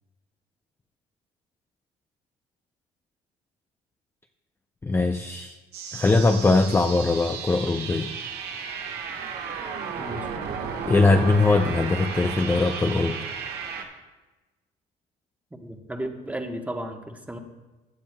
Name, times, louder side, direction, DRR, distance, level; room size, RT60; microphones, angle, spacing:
voice 1, 4.8-5.6 5.9-8.1 10.9-13.2, left 3 dB, 15° left, 5 dB, 0.5 m, -21 dB
sound 1, 5.7-13.8, right 6 dB, 75° right, 1.3 m, -34 dB
voice 2, 10.0-10.3 15.5-17.4, right 1 dB, 10° right, 4 dB, 1.1 m, -34 dB
16.0 x 10.0 x 2.2 m, 1.1 s
cardioid pair, 105°, 17 cm